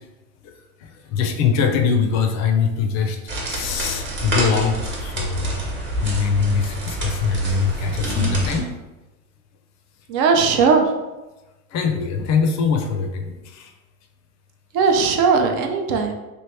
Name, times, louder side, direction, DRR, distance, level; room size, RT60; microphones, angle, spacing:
voice 1, 0.8-3.2 3.5-5.6 6.0-8.7 11.7-13.7, left 5 dB, 40° left, 5 dB, 0.5 m, -22 dB
sound 1, 3.3-8.6, right 1 dB, 25° right, 1.1 m, -27 dB
voice 2, 10.1-10.9 14.7-16.1, right 5 dB, 50° right, 3 dB, 0.6 m, -18 dB
3.1 x 2.6 x 3.3 m, 1.1 s
supercardioid pair, 110°, 43 cm